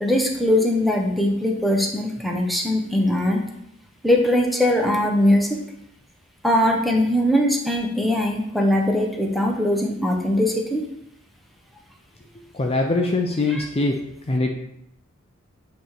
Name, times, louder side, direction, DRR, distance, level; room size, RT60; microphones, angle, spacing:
voice 1, 0.0-3.4 4.0-5.6 6.4-10.8 13.5-13.6, left 1 dB, ahead, 0 dB, 0.9 m, -21 dB
voice 2, 12.5-14.0 14.3-14.5, left 2 dB, 30° left, 2 dB, 0.6 m, -22 dB
7.8 x 3.2 x 4.4 m, 0.78 s
head